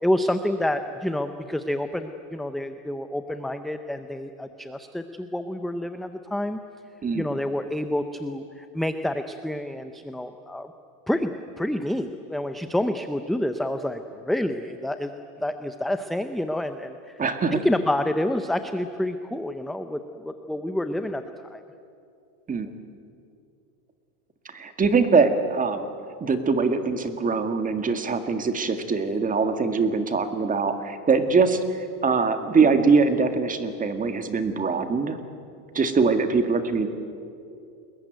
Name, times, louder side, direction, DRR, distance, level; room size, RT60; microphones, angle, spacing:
voice 1, 0.0-6.6 7.1-10.7 11.1-15.1 15.4-17.2 17.5-21.2 21.5-21.6, left 1 dB, ahead, 8 dB, 0.6 m, -28 dB
voice 2, 17.2-17.6 22.5-22.7 24.5-25.9 26.2-35.2 35.7-36.9, right 4 dB, 20° right, 8 dB, 1.8 m, -23 dB
30.0 x 21.5 x 9.2 m, 2.6 s
supercardioid pair, 140°, 44 cm